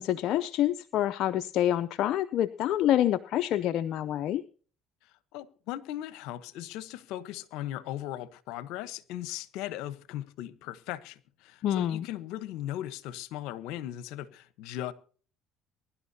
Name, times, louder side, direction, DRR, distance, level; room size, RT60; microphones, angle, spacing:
voice 1, 0.0-4.4 11.6-12.1, left 12 dB, 65° left, 0.5 m, -27 dB
voice 2, 5.3-14.9, left 13 dB, 80° left, 1.0 m, -38 dB
23.5 x 11.5 x 2.8 m
supercardioid pair, 90°, 0 cm